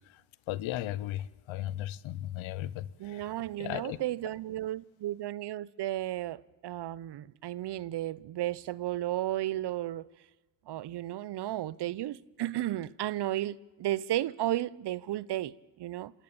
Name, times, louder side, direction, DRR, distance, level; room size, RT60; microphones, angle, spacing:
voice 1, 0.5-3.2 3.6-4.0, left 14 dB, 70° left, 1.1 m, -36 dB
voice 2, 3.0-10.1 10.7-16.1, right 14 dB, 55° right, 0.9 m, -34 dB
27.5 x 16.5 x 8.8 m
supercardioid pair, 65°, 48 cm